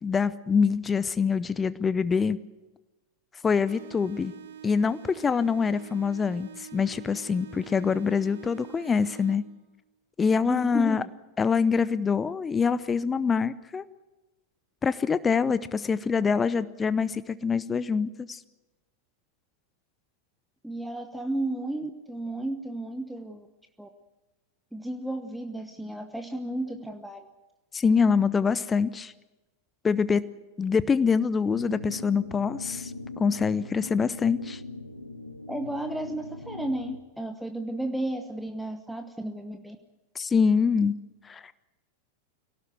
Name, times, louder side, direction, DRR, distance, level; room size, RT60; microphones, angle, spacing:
voice 1, 0.0-2.4 3.4-4.3 4.6-9.4 10.2-11.0 11.4-13.8 14.8-18.4 27.7-29.1 29.8-30.2 30.6-32.9 33.2-34.6 40.1-40.9 41.2-41.5, left 5 dB, 15° left, 16 dB, 0.7 m, -25 dB
sound 1, 3.7-9.7, right 8 dB, 60° right, 1.2 m, -45 dB
voice 2, 10.5-11.1 20.6-23.5 23.8-23.9 24.7-27.3 35.5-39.8, right 1 dB, ahead, 7 dB, 1.1 m, -33 dB
sound 2, 31.5-37.0, left 2 dB, 85° left, 1.1 m, -40 dB
24.5 x 17.5 x 7.9 m, 1.1 s
figure-of-eight pair, 90°, 0 cm